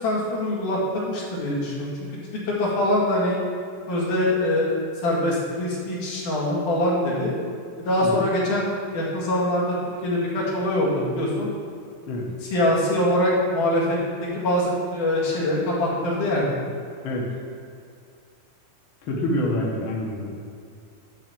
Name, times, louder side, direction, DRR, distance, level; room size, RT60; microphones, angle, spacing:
voice 1, 0.0-1.9 2.5-3.4 3.9-4.7 5.0-7.3 7.8-9.7 10.0-11.5 12.5-13.8 14.4-16.5, left 1 dB, 80° left, -5 dB, 3.6 m, -23 dB
voice 2, 8.0-8.3 12.1-12.3 17.0-17.3 19.0-20.3, left 1 dB, 50° left, -2 dB, 1.7 m, -26 dB
10.5 x 4.0 x 7.5 m, 2.3 s
omnidirectional pair, 3.6 m